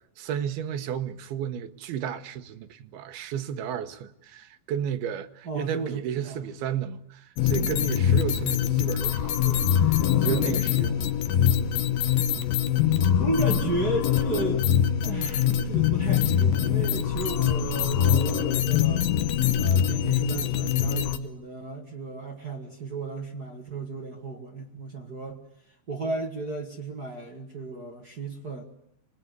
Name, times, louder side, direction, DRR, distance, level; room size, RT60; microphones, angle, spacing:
voice 1, 0.2-11.2, right 9 dB, 85° right, 3.1 m, -33 dB
voice 2, 5.4-6.4 13.2-14.7 15.0-19.1 19.6-25.4 25.7-28.6, right 3 dB, 40° right, 1.6 m, -33 dB
sound 1, 7.4-21.2, left 9 dB, 75° left, 2.8 m, -23 dB
25.5 x 20.0 x 9.5 m
omnidirectional pair, 4.3 m